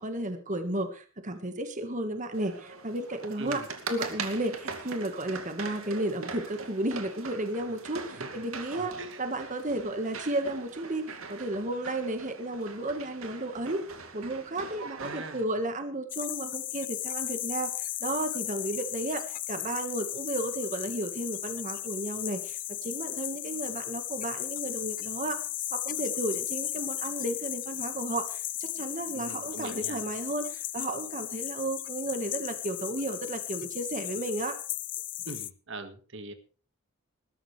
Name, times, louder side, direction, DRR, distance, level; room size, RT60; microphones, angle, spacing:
voice 1, 0.0-3.6 3.9-13.8 14.1-25.4 25.7-34.6, right 1 dB, 35° right, 7 dB, 1.7 m, -33 dB
sound 1, 2.3-15.4, right 4 dB, 80° right, 2.5 m, -41 dB
voice 2, 3.4-3.7 8.1-8.5 8.8-9.2 15.0-15.5 29.1-30.0 35.2-36.3, right 2 dB, 60° right, 8 dB, 1.9 m, -42 dB
sound 2, 16.1-35.5, left 14 dB, 40° left, 0.6 m, -36 dB
20.5 x 13.0 x 3.4 m, 0.39 s
head